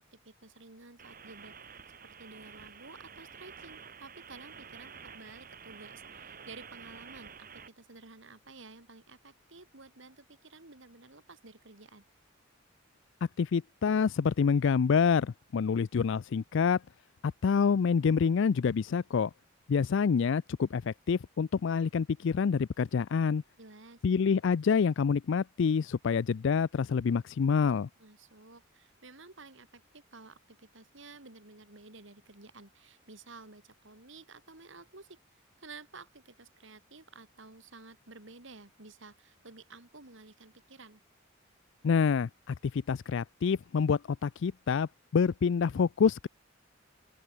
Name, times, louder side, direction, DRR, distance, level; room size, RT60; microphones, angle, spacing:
voice 1, 0.0-1.5 1.9-12.0 23.6-24.0 28.0-35.2 35.6-41.0, right 3 dB, 60° right, 3.0 m, -52 dB
sound 1, 1.0-7.7, right 6 dB, 45° right, 2.1 m, -50 dB
voice 2, 13.4-16.8 17.4-19.3 19.7-23.4 24.0-27.9 41.8-46.3, left 6 dB, 60° left, 0.4 m, -27 dB
open air
head